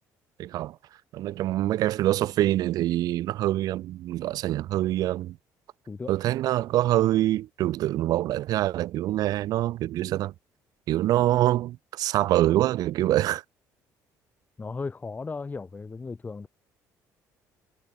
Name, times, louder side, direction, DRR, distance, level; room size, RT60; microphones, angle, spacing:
voice 1, 0.4-0.8 1.1-5.4 6.1-10.3 10.9-13.4, right 14 dB, 65° right, 0.4 m, -25 dB
voice 2, 14.6-16.5, left 4 dB, 25° left, 1.6 m, -35 dB
cardioid pair, 90°, 7 cm